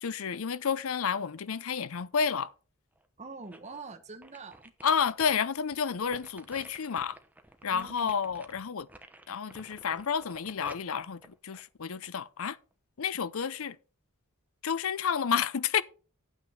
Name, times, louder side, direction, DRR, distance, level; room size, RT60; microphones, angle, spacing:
voice 1, 0.0-2.5 4.8-7.2 7.6-8.9 9.3-12.6 13.0-13.8 14.6-15.8, left 6 dB, 70° left, 0.6 m, -30 dB
sound 1, 3.0-3.8 4.2-12.3 12.7-12.8, right 1 dB, 5° right, 0.9 m, -52 dB
voice 2, 3.2-4.7 7.7-8.1, right 4 dB, 30° right, 1.0 m, -45 dB
8.9 x 8.1 x 4.3 m
head